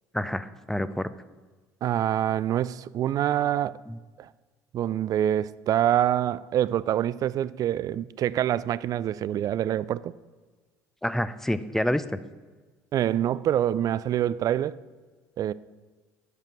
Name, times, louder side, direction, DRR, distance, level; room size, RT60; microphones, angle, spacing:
voice 1, 0.1-1.1 3.9-4.0 11.0-12.2, left 1 dB, 5° left, 0.5 m, -28 dB
voice 2, 1.8-3.8 4.2-4.3 4.7-10.1 12.9-14.8 15.4-15.5, right 11 dB, 50° right, 0.3 m, -26 dB
8.2 x 5.2 x 7.5 m
supercardioid pair, 85°, 8 cm